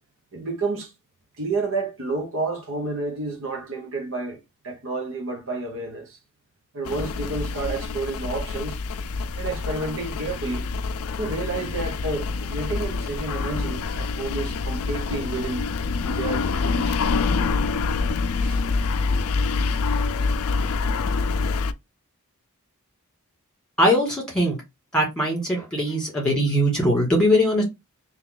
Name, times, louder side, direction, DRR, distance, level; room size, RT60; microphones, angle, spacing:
voice 1, 0.3-0.9 1.4-6.2 6.7-8.8 9.4-10.7 11.2-15.7 16.0-17.0 18.4-18.6, right 3 dB, 65° right, 1.0 m, -30 dB
sound 1, 6.8-21.7, left 4 dB, 70° left, 0.4 m, -26 dB
voice 2, 23.8-24.6 24.9-27.6, equal, 5° left, 2.1 m, -21 dB
3.3 x 3.0 x 3.6 m
head